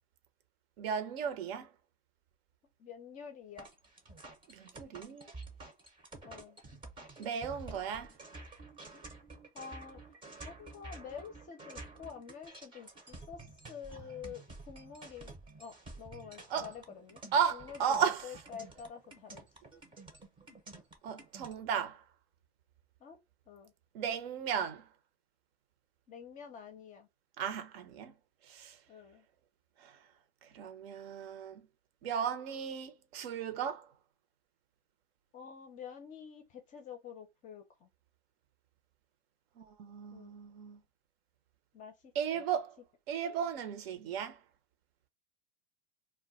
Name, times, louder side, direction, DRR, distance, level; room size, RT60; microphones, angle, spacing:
voice 1, 0.8-1.7 4.5-5.3 7.2-8.1 16.5-16.7 17.3-18.3 21.0-22.0 23.9-24.9 27.4-28.1 28.5-28.8 29.8-29.9 30.4-31.6 32.0-33.9 39.6-40.8 42.2-42.8 43.1-44.4, right 7 dB, 65° right, 0.7 m, -35 dB
voice 2, 2.8-3.7 6.2-6.6 8.9-9.1 9.5-10.0 10.4-13.4 13.7-17.2 17.5-19.5 23.0-23.2 23.5-23.7 26.1-27.1 28.9-29.3 35.3-37.9 40.1-40.3 41.7-42.5, left 7 dB, 25° left, 0.5 m, -48 dB
sound 1, 3.6-21.5, right 2 dB, 15° right, 0.6 m, -50 dB
2.2 x 2.2 x 3.8 m
hypercardioid pair, 120°, 32 cm